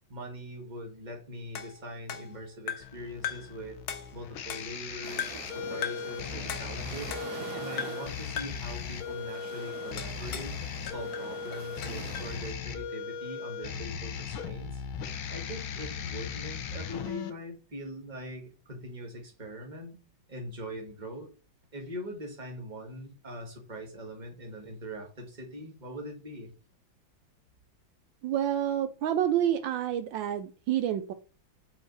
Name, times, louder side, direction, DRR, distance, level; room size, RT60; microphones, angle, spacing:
voice 1, 0.1-7.2 7.5-10.5 10.8-14.8 15.3-20.0 20.3-21.3 21.7-26.5, equal, 25° right, 1 dB, 1.9 m, -42 dB
sound 1, 1.6-3.0 3.2-3.6 3.9-4.9 5.2-5.5 5.8-6.1 6.5-7.5 7.8-8.1 8.4-8.7 10.0-10.6 10.9-12.3, left 8 dB, 70° left, 1.5 m, -38 dB
sound 2, 2.8-17.3, left 7 dB, 85° left, 1.7 m, -38 dB
sound 3, 5.0-12.5, right 6 dB, 55° right, 1.4 m, -45 dB
voice 2, 28.2-31.1, right 10 dB, 75° right, 9 dB, 1.3 m, -28 dB
8.6 x 4.3 x 4.0 m, 0.35 s
omnidirectional pair, 2.2 m